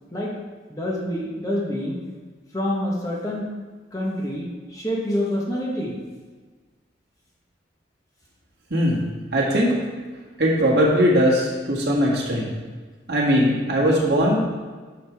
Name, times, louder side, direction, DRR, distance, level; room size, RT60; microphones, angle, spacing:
voice 1, 0.7-2.0 2.5-3.5 3.9-6.0, left 1 dB, 20° left, -4 dB, 1.1 m, -27 dB
voice 2, 9.3-9.8 10.4-12.5 13.1-14.4, equal, 55° right, -5 dB, 1.9 m, -19 dB
11.5 x 5.1 x 3.5 m, 1.4 s
head